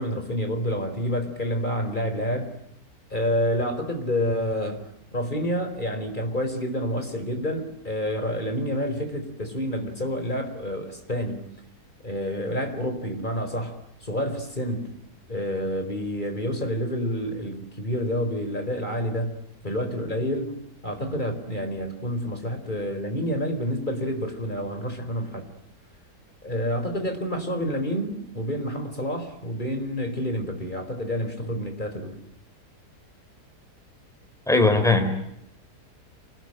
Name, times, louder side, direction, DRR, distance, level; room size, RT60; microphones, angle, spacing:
voice 1, 0.0-2.5 3.1-4.8 5.1-11.5 12.0-14.9 15.3-19.4 19.6-20.5 20.8-25.4 26.4-32.2, equal, 25° left, 4.7 m, -28 dB
voice 2, 34.5-35.1, left 3 dB, ahead, 3.9 m, -19 dB
28.5 x 20.0 x 9.0 m
omnidirectional pair, 1.7 m